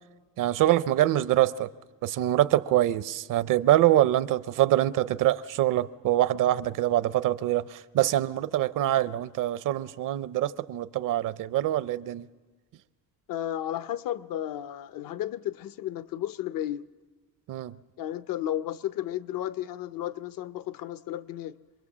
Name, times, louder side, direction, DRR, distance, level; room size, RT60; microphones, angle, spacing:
voice 1, 0.4-1.7 2.0-12.3 17.5-17.8, right 13 dB, 60° right, 0.7 m, -24 dB
voice 2, 13.3-16.9 18.0-21.6, left 12 dB, 65° left, 0.7 m, -33 dB
26.0 x 21.0 x 7.3 m
cardioid pair, 155°, 36 cm